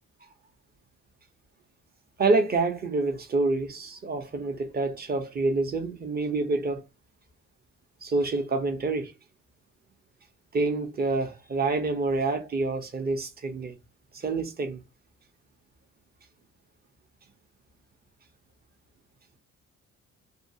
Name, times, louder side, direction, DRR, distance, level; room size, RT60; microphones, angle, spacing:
voice 1, 2.2-6.8 8.0-9.1 10.5-13.8 14.1-14.8, right 3 dB, 30° right, 0.7 m, -27 dB
2.6 x 2.3 x 2.7 m
cardioid pair, 90°, 30 cm